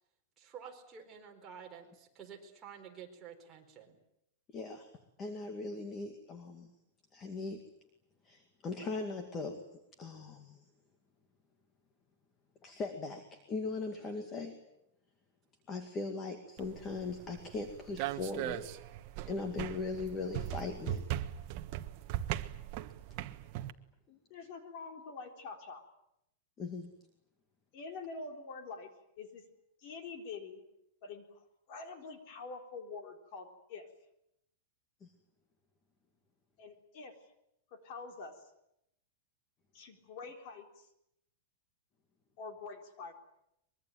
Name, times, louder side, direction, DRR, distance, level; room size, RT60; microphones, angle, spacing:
voice 1, 0.4-4.0, right 7 dB, 20° right, 0 dB, 4.3 m, -50 dB
voice 2, 4.5-4.9 5.2-6.7 7.1-7.6 8.2-9.6 10.0-10.6 12.6-14.5 15.7-18.6 19.3-21.0 24.1-24.2 26.6-26.9 35.0-35.1, left 3 dB, 20° left, 6 dB, 2.2 m, -39 dB
sound 1, 16.6-23.7, right 13 dB, 40° right, 1.3 m, -39 dB
voice 3, 24.3-25.8 27.7-29.4 29.8-30.6 31.0-33.9 36.6-37.2 37.7-38.4 39.7-40.9 42.4-43.1, left 4 dB, 40° left, 5 dB, 3.9 m, -46 dB
24.0 x 22.5 x 9.2 m, 0.80 s
supercardioid pair, 170°, 0 cm